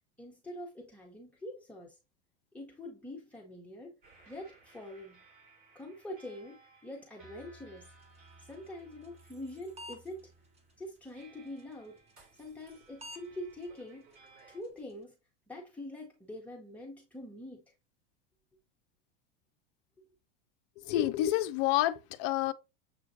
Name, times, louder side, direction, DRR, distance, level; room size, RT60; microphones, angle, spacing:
voice 1, 0.2-2.0 2.5-3.9 4.3-5.2 5.7-7.9 8.4-10.3 10.8-12.0 12.4-14.2 14.5-15.1 15.5-17.7, left 1 dB, 5° left, 0.9 m, -45 dB
sound 1, 4.0-14.6, right 3 dB, 45° right, 2.5 m, -60 dB
sound 2, 7.8-15.1, left 1 dB, 20° right, 1.0 m, -56 dB
voice 2, 20.8-22.5, left 14 dB, 50° left, 0.4 m, -29 dB
7.1 x 2.4 x 2.6 m
hypercardioid pair, 100°, 29 cm